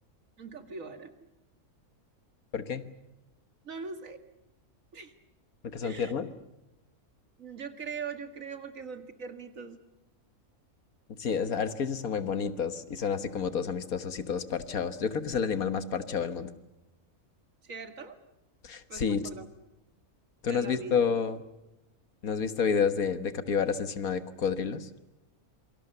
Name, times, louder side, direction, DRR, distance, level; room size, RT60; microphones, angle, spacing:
voice 1, 0.4-1.3 3.6-4.2 4.9-5.1 5.8-6.1 7.4-9.8 17.6-18.2 18.9-19.5 20.5-21.0, right 5 dB, 60° right, 8 dB, 2.4 m, -41 dB
voice 2, 2.5-2.9 5.7-6.3 11.2-16.5 18.6-19.2 20.4-21.4 22.2-24.9, left 6 dB, 70° left, 11 dB, 1.8 m, -30 dB
27.0 x 24.5 x 6.8 m, 0.96 s
omnidirectional pair, 1.6 m